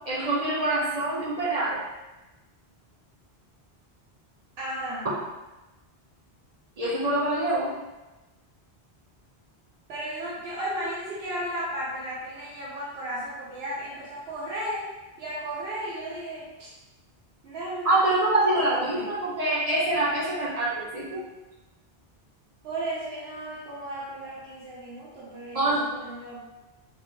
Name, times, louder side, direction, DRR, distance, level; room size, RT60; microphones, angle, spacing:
voice 1, 0.1-1.8 6.8-7.7 17.8-21.2 25.5-25.8, right 2 dB, 50° right, -7 dB, 0.5 m, -25 dB
voice 2, 4.6-5.1 9.9-14.8 15.2-16.7 17.4-17.9 18.5-19.0 22.6-26.4, right 1 dB, 75° right, -7 dB, 0.8 m, -34 dB
2.3 x 2.2 x 2.9 m, 1.1 s
omnidirectional pair, 1.0 m